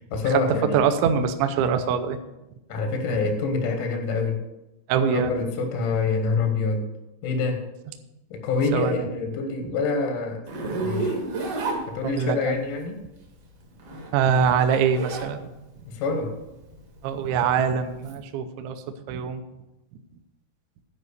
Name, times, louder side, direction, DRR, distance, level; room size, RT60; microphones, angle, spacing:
voice 1, 0.0-0.8 2.7-4.4 5.1-6.9 7.2-7.7 8.3-10.4 10.8-11.2 11.9-13.0 15.9-16.4, left 4 dB, 90° left, 5 dB, 4.1 m, -26 dB
voice 2, 0.7-2.2 4.9-5.3 8.7-9.1 12.0-12.6 14.1-15.4 17.0-18.8 19.1-19.4, right 7 dB, 80° right, 7 dB, 2.7 m, -23 dB
Zipper (clothing), 10.5-12.5 13.7-15.3 15.7-18.1, right 3 dB, 65° right, 1.4 m, -31 dB
11.0 x 5.0 x 8.1 m, 0.95 s
omnidirectional pair, 5.9 m